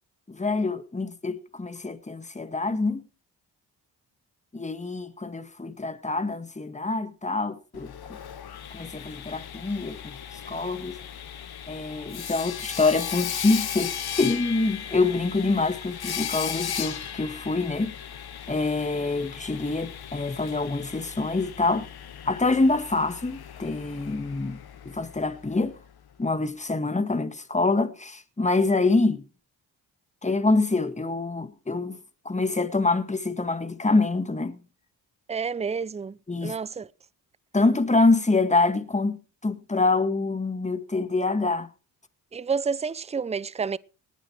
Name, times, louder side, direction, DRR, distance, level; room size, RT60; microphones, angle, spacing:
voice 1, 0.3-3.1 4.5-8.2 8.7-10.2 10.5-11.0 11.7-18.0 18.5-21.9 22.3-25.8 26.2-29.3 30.2-32.0 32.3-34.6 36.3-36.6 37.5-41.7, left 3 dB, 15° left, 1.8 m, -26 dB
Sawing, 7.7-25.6, left 9 dB, 60° left, 1.9 m, -37 dB
voice 2, 35.3-36.9 42.3-43.8, right 5 dB, 15° right, 0.6 m, -29 dB
19.0 x 9.2 x 4.5 m
supercardioid pair, 60°, 43 cm